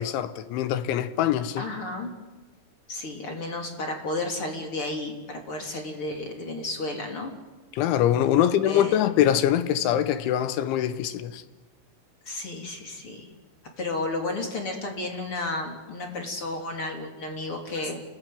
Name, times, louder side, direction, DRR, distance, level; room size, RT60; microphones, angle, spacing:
voice 1, 0.0-1.6 7.7-11.4, left 11 dB, 75° left, 3.2 m, -23 dB
voice 2, 1.6-2.1 2.9-7.3 8.3-9.0 12.2-13.3 13.8-18.0, left 2 dB, 30° left, 3.2 m, -32 dB
28.0 x 20.5 x 9.4 m
omnidirectional pair, 6.0 m